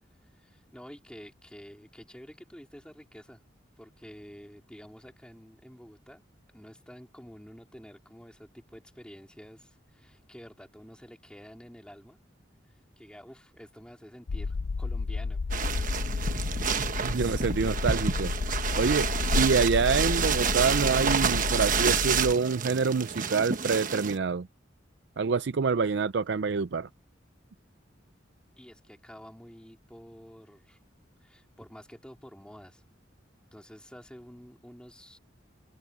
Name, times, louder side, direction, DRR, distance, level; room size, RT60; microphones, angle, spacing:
voice 1, 0.2-3.4 3.8-6.2 6.5-12.2 13.0-15.4 18.8-19.0 28.6-30.8 31.2-32.8 33.5-35.2, equal, 5° left, 3.1 m, -49 dB
sound 1, 14.3-22.3, left 4 dB, 85° left, 0.5 m, -31 dB
sound 2, 15.5-24.2, right 6 dB, 45° right, 1.2 m, -29 dB
voice 2, 17.0-18.3 18.8-19.1 19.3-24.5 25.2-26.9, right 5 dB, 65° right, 0.5 m, -26 dB
head